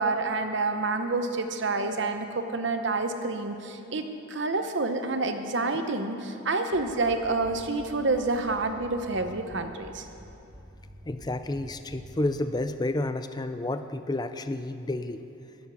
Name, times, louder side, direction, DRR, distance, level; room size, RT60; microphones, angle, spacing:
voice 1, 0.0-10.1, right 3 dB, 60° right, 7 dB, 0.9 m, -28 dB
sound 1, 6.7-12.5, equal, 10° right, 1.4 m, -49 dB
voice 2, 11.1-15.2, left 2 dB, 20° left, 10 dB, 0.5 m, -30 dB
13.0 x 7.2 x 9.2 m, 2.7 s
head